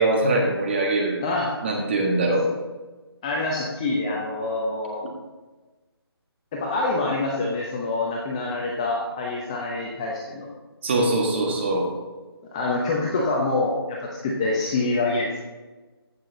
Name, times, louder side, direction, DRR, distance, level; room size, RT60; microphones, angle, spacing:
voice 1, 0.0-1.2 1.6-2.5 10.8-11.9, right 2 dB, 25° right, 0 dB, 1.8 m, -22 dB
voice 2, 1.2-1.5 3.2-5.0 6.5-10.5 12.5-15.3, left 2 dB, 15° left, -2 dB, 0.8 m, -26 dB
15.0 x 6.0 x 4.1 m, 1.2 s
figure-of-eight pair, 170°, 14 cm